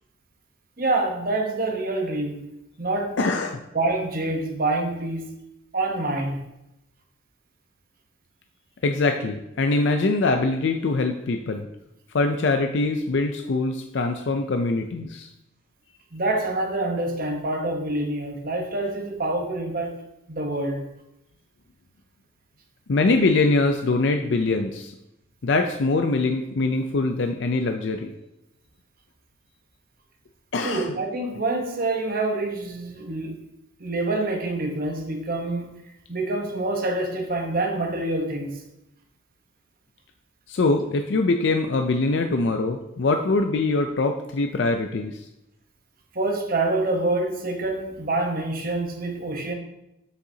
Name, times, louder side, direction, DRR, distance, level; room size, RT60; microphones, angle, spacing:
voice 1, 0.8-2.4 2.8-3.2 3.7-5.3 5.7-6.4 16.1-20.0 20.3-20.9 30.6-33.4 33.8-35.8 36.1-38.6 46.1-49.5, right 2 dB, 45° right, 1.0 m, -26 dB
voice 2, 3.2-3.6 8.8-11.7 12.1-15.3 22.9-24.9 25.4-28.1 30.5-30.9 40.5-45.3, left 3 dB, 60° left, 0.4 m, -23 dB
7.7 x 6.6 x 2.8 m
head